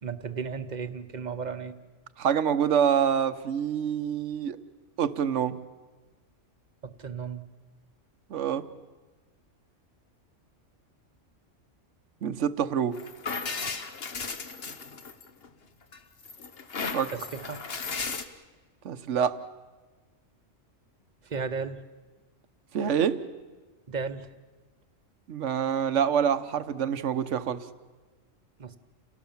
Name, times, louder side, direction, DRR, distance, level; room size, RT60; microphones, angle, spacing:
voice 1, 0.0-1.7 6.8-7.4 17.1-17.6 21.3-21.8 23.9-24.3 28.6-28.8, right 5 dB, 35° right, 11 dB, 1.1 m, -34 dB
voice 2, 2.2-4.6 5.0-5.6 8.3-8.6 12.2-13.0 16.9-17.1 18.8-19.4 22.7-23.2 25.3-27.6, right 8 dB, 70° right, 12 dB, 1.3 m, -26 dB
sound 1, 12.9-15.5 15.9-18.2, left 4 dB, 50° left, 1.4 m, -35 dB
29.0 x 18.0 x 7.2 m, 1.3 s
omnidirectional pair, 1.3 m